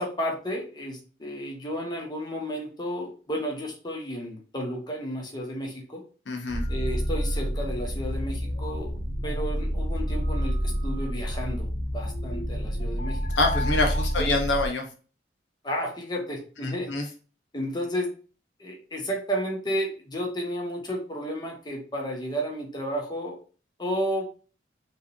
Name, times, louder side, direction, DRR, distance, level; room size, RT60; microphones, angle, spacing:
voice 1, 0.0-6.0 6.7-11.7 11.9-13.2 14.2-14.4 15.6-16.9 17.5-18.1 18.6-23.4 23.8-24.3, equal, 20° left, -1 dB, 1.1 m, -32 dB
voice 2, 6.3-6.6 13.4-14.9 16.6-17.0, left 2 dB, 80° left, 2 dB, 1.1 m, -26 dB
sound 1, 6.5-14.7, equal, 45° left, 0.8 m, -28 dB
4.7 x 3.3 x 2.8 m, 0.37 s
head